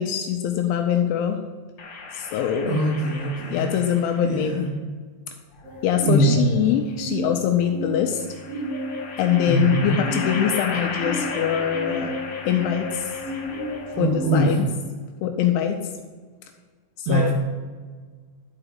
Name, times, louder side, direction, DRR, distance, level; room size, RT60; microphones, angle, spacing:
voice 1, 0.0-1.4 2.1-2.8 3.5-4.7 5.8-8.2 9.2-12.1 12.4-13.1 14.0-14.7 15.2-15.8 17.0-17.3, left 9 dB, 85° left, 4 dB, 2.8 m, -23 dB
sound 1, 1.8-4.4 5.6-6.6 8.2-14.2, left 4 dB, 55° left, 1.7 m, -35 dB
voice 2, 2.6-3.6 4.2-4.7 6.0-6.4 9.5-10.0 13.9-14.6 17.0-17.3, right 1 dB, 85° right, -4 dB, 1.5 m, -22 dB
sound 2, 5.6-14.3, left 1 dB, 45° right, 1.1 m, -33 dB
12.0 x 4.8 x 5.3 m, 1.5 s
omnidirectional pair, 5.9 m